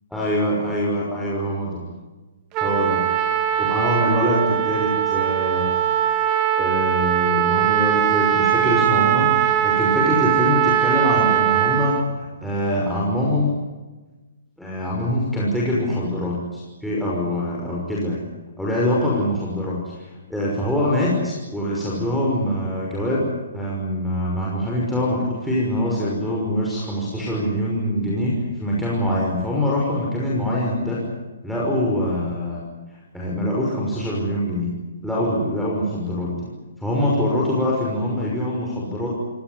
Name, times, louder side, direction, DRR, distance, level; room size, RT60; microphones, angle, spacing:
voice 1, 0.1-1.8 2.6-3.0 3.6-5.7 6.6-13.5 14.6-18.2 18.6-23.2 23.5-28.3 28.6-31.0 31.4-32.6 33.1-34.7 35.0-36.5 36.8-39.1, left 1 dB, ahead, -6 dB, 6.0 m, -24 dB
Trumpet, 2.5-12.0, right 11 dB, 30° right, 2.3 m, -20 dB
26.5 x 18.0 x 9.8 m, 1.2 s
hypercardioid pair, 145°, 0 cm